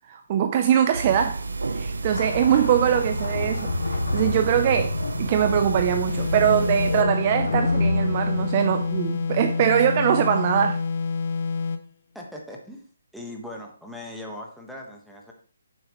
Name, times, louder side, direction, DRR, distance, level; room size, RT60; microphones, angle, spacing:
voice 1, 0.1-1.4 1.7-10.8, right 9 dB, 30° right, 0.6 m, -22 dB
sound 1, 0.9-7.0, right 3 dB, 85° right, 0.9 m, -32 dB
sound 2, 2.1-9.5, left 2 dB, 80° left, 2.0 m, -30 dB
sound 3, 6.1-11.9, left 4 dB, 45° left, 0.8 m, -27 dB
voice 2, 12.1-12.8 13.1-15.3, left 1 dB, ahead, 1.3 m, -39 dB
9.0 x 7.3 x 3.1 m
hypercardioid pair, 165°, 0 cm